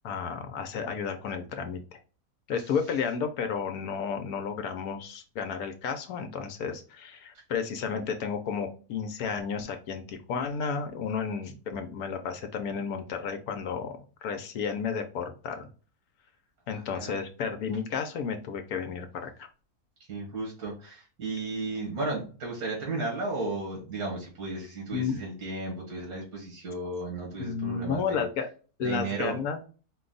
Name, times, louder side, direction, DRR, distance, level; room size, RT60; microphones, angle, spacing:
voice 1, 0.0-1.8 2.5-13.9 14.2-15.7 16.7-19.5 24.9-25.2 27.4-28.5 28.8-29.6, left 6 dB, 75° left, 6 dB, 1.1 m, -32 dB
voice 2, 16.7-17.2 20.1-28.3 28.8-29.4, right 2 dB, 90° right, -2 dB, 2.1 m, -34 dB
4.5 x 2.3 x 3.8 m, 0.37 s
omnidirectional pair, 1.6 m